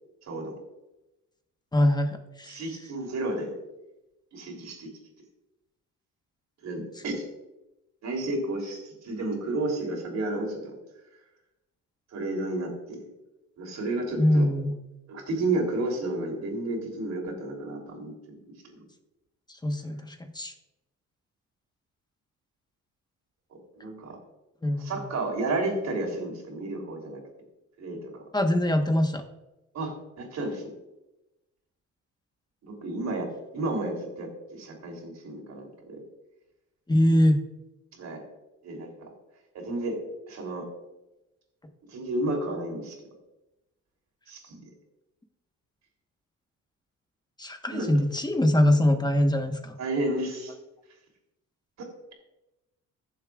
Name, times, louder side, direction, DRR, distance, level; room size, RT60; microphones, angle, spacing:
voice 1, 0.2-0.5 2.5-3.5 4.3-4.9 6.6-7.3 8.0-10.7 12.1-13.0 13.6-14.5 15.1-18.1 18.6-18.8 23.7-24.2 24.8-27.2 27.8-28.2 29.7-30.6 32.6-36.0 37.9-38.2 38.6-39.1 39.5-40.0 40.3-40.7 41.9-43.0 44.3-44.7 47.7-47.9 49.8-50.5 51.8-52.1, right 2 dB, 65° right, 0 dB, 3.2 m, -32 dB
voice 2, 1.7-2.6 14.2-14.7 19.6-20.5 24.6-25.0 28.3-29.2 36.9-37.4 47.4-49.7, left 1 dB, 15° left, 5 dB, 1.3 m, -23 dB
15.5 x 7.2 x 2.4 m, 0.97 s
cardioid pair, 90°, 30 cm